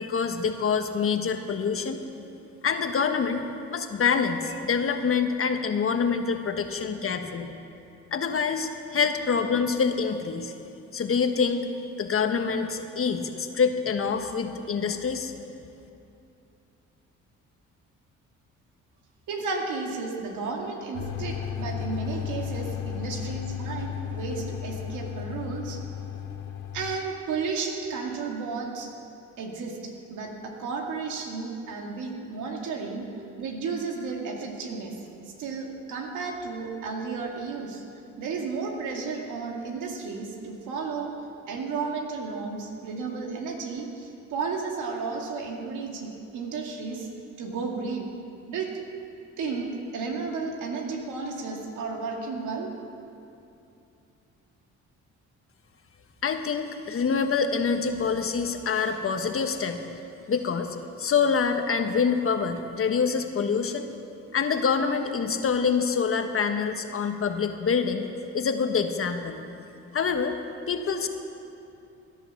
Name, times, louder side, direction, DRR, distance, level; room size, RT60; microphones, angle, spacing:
voice 1, 0.0-2.1 2.6-3.4 3.7-7.5 8.1-10.5 10.9-11.7 12.0-15.3 56.2-59.8 60.3-63.9 64.3-68.1 68.3-69.4 69.9-70.3 70.7-71.1, left 6 dB, 45° left, 6 dB, 1.4 m, -26 dB
voice 2, 19.3-25.8 26.7-28.9 29.4-33.1 33.4-34.9 35.4-37.8 38.2-41.1 41.5-47.1 47.4-48.1 48.5-48.7 49.4-52.7, right 4 dB, 85° right, 1 dB, 2.3 m, -33 dB
sound 1, 20.9-27.0, left 9 dB, 85° left, 1.5 m, -34 dB
16.5 x 11.0 x 7.3 m, 2.7 s
cardioid pair, 90°, 30 cm